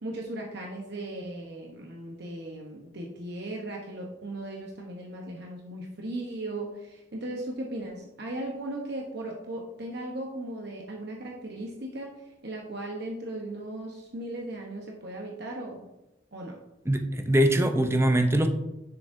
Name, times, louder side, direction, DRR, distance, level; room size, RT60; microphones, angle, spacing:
voice 1, 0.0-15.9 16.3-16.6, right 1 dB, 60° right, -1 dB, 1.0 m, -37 dB
voice 2, 16.9-18.5, right 1 dB, 15° right, 6 dB, 0.6 m, -22 dB
10.0 x 7.1 x 2.7 m, 0.95 s
head